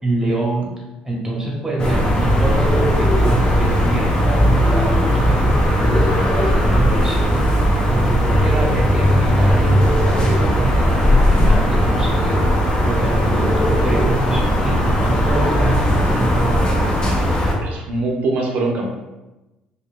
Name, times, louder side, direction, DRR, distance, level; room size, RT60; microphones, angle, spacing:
voice 1, 0.0-0.7 1.0-17.2, right 2 dB, 15° right, -3 dB, 1.1 m, -25 dB
sound 1, 1.8-17.5, equal, 30° left, 0.7 m, -17 dB
voice 2, 17.6-18.9, right 2 dB, 65° right, 0 dB, 0.6 m, -22 dB
2.5 x 2.4 x 3.5 m, 1.1 s
cardioid pair, 95°, 3 cm